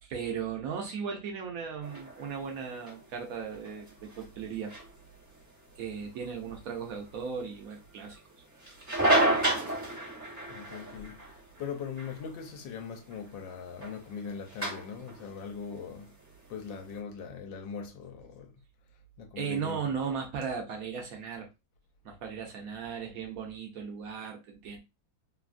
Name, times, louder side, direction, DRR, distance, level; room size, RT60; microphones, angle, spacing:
voice 1, 0.0-4.7 5.8-8.2 19.4-21.5 22.0-24.8, right 6 dB, 65° right, 0.9 m, -36 dB
sound 1, 1.8-16.9, right 1 dB, 20° right, 0.4 m, -34 dB
voice 2, 10.5-16.1 16.5-18.6 19.2-19.9 20.4-20.5, left 6 dB, 75° left, 1.3 m, -41 dB
3.2 x 2.3 x 2.4 m
omnidirectional pair, 2.1 m